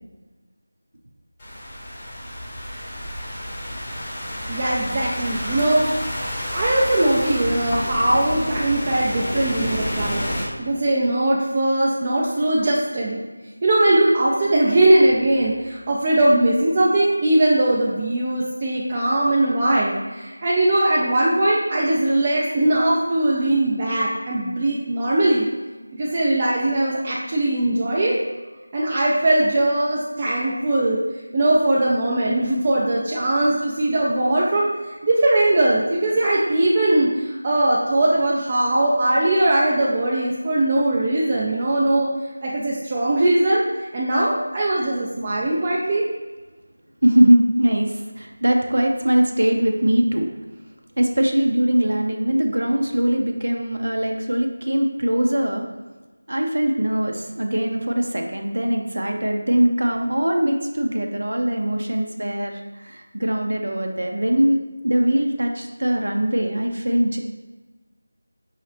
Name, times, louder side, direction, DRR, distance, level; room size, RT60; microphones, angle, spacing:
Thunderstorm / Rain, 1.4-10.4, equal, 15° left, 0.8 m, -29 dB
voice 1, 4.5-5.8 6.5-13.2 13.6-25.5 25.9-28.1 28.7-31.0 31.3-42.1 42.4-46.0, right 1 dB, 20° right, -5 dB, 0.4 m, -20 dB
voice 2, 47.0-50.3 51.0-55.7 56.3-67.2, right 1 dB, 80° right, 2 dB, 0.6 m, -21 dB
5.6 x 2.7 x 3.3 m, 1.2 s
figure-of-eight pair, 175°, 0 cm